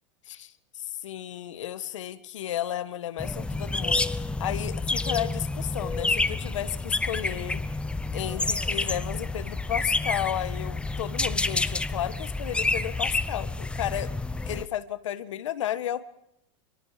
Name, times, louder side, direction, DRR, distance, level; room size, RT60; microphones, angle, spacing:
voice 1, 0.3-7.6 8.1-14.1 14.5-16.0, left 11 dB, 85° left, 12 dB, 1.6 m, -33 dB
sound 1, 3.2-14.7, left 3 dB, 5° left, 0.8 m, -29 dB
26.5 x 25.0 x 5.1 m, 0.78 s
supercardioid pair, 130°, 15 cm